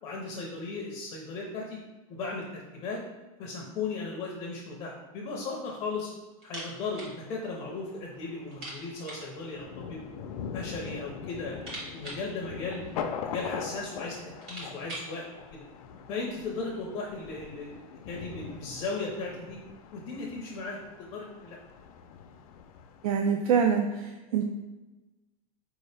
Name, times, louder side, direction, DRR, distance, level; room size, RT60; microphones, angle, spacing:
voice 1, 0.0-1.8 2.1-3.0 3.4-6.1 6.4-10.1 10.5-12.8 13.2-15.3 15.5-15.6 16.1-19.6 19.9-21.6, left 3 dB, 20° left, -1 dB, 0.5 m, -36 dB
sound 1, 6.4-7.2 7.4-7.5 7.9-8.0 8.5-9.3 10.3-10.9 11.2-13.2 13.9-14.0 14.2-15.2, right 1 dB, 30° right, 1.1 m, -43 dB
Thunder, 7.0-23.2, left 7 dB, 80° left, 0.4 m, -42 dB
voice 2, 23.0-24.4, right 6 dB, 75° right, 3 dB, 0.4 m, -25 dB
4.5 x 2.7 x 3.2 m, 1.1 s
supercardioid pair, 175°, 19 cm